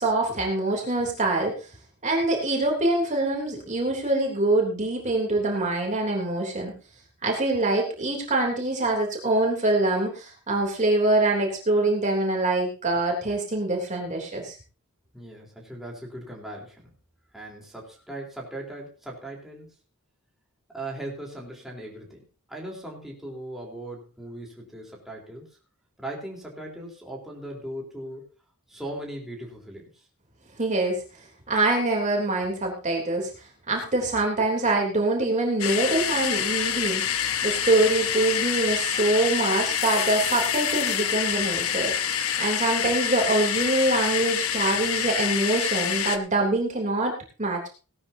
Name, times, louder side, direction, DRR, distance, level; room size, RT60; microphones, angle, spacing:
voice 1, 0.0-1.5 2.0-6.7 7.2-14.6 30.6-31.0 31.5-33.3 33.7-37.0 37.4-41.9 42.4-47.7, right 2 dB, 35° right, 0 dB, 3.3 m, -24 dB
voice 2, 15.1-16.9 17.3-19.7 20.7-25.5 26.0-28.3 28.7-30.0, right 1 dB, ahead, -2 dB, 3.8 m, -38 dB
sound 1, 35.6-46.2, left 9 dB, 70° left, 1.1 m, -26 dB
18.5 x 12.5 x 2.8 m, 0.34 s
head